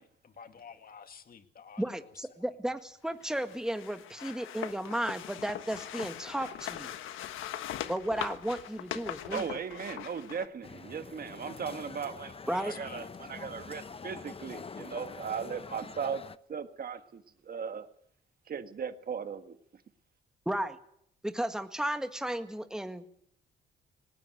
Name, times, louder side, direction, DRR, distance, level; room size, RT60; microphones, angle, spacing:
voice 1, 0.0-2.3 12.5-13.1 13.4-13.7, left 6 dB, 45° left, 8 dB, 2.1 m, -50 dB
voice 2, 1.8-6.9 7.9-9.6 12.5-12.7 20.4-20.8 21.2-23.2, right 1 dB, 5° right, 8 dB, 1.7 m, -34 dB
sound 1, 3.2-10.5, left 11 dB, 90° left, 1.4 m, -41 dB
voice 3, 9.3-16.2 16.5-17.9 18.5-19.6, right 6 dB, 50° right, 9 dB, 1.6 m, -37 dB
sound 2, 10.6-16.4, left 5 dB, 30° left, 0.8 m, -45 dB
19.5 x 18.5 x 8.0 m, 0.70 s
cardioid pair, 90°, 20 cm